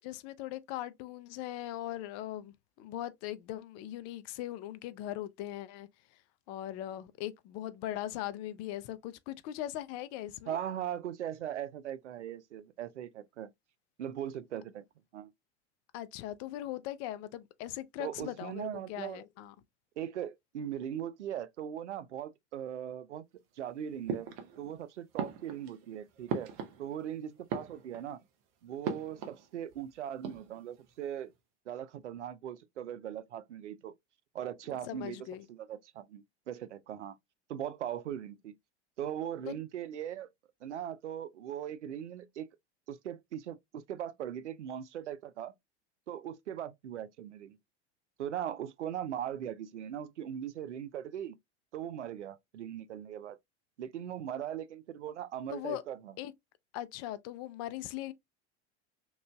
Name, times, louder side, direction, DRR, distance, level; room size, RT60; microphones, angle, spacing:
voice 1, 0.0-6.2 6.5-10.6 15.9-19.5 34.7-35.5 39.5-39.6 55.5-55.8 56.2-56.3 56.7-58.1, left 13 dB, 45° left, 0.5 m, -40 dB
voice 2, 10.5-13.5 14.0-14.8 15.1-15.3 18.0-19.2 20.0-23.2 23.6-24.3 24.6-26.5 26.8-28.2 28.6-31.3 31.7-33.9 34.3-35.2 35.5-37.2 37.5-38.5 39.0-40.3 40.6-42.5 42.9-45.5 46.1-47.6 48.2-51.4 51.7-53.4 53.8-56.1, right 10 dB, 90° right, 0.5 m, -39 dB
sound 1, 24.1-24.8 25.2-27.1 27.4-28.2 28.8-29.5 29.7-29.8 30.1-30.8, right 6 dB, 60° right, 0.9 m, -39 dB
3.7 x 3.0 x 2.2 m
hypercardioid pair, 90°, 34 cm